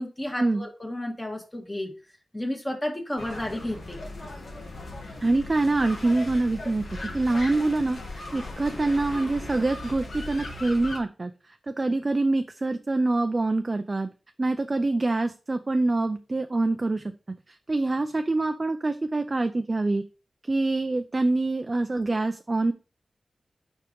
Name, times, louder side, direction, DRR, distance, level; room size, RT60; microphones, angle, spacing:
voice 1, 0.0-1.9 2.3-4.0, left 1 dB, 20° left, 2 dB, 1.7 m, -32 dB
sound 1, 3.2-11.0, left 2 dB, 75° left, 1.7 m, -38 dB
voice 2, 5.2-6.8 7.1-14.1 14.4-17.0 17.5-20.0 20.5-22.7, right 2 dB, 35° right, 7 dB, 0.5 m, -25 dB
4.9 x 4.5 x 5.3 m, 0.34 s
wide cardioid pair, 75°, 0 cm